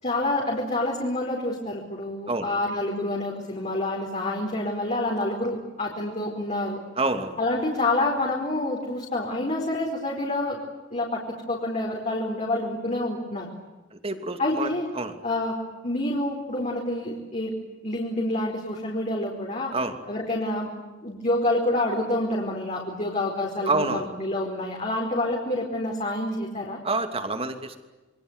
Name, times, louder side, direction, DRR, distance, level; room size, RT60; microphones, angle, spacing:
voice 1, 0.0-6.8 7.4-10.6 10.9-13.5 14.4-14.9 15.2-15.6 15.8-17.5 17.8-19.7 20.1-20.7 21.0-26.8, left 1 dB, 35° left, -2 dB, 4.8 m, -27 dB
voice 2, 7.0-7.4 13.9-15.1 19.7-19.9 23.6-24.1 26.8-27.8, right 2 dB, 30° right, 8 dB, 2.9 m, -27 dB
28.5 x 24.0 x 8.3 m, 1.1 s
head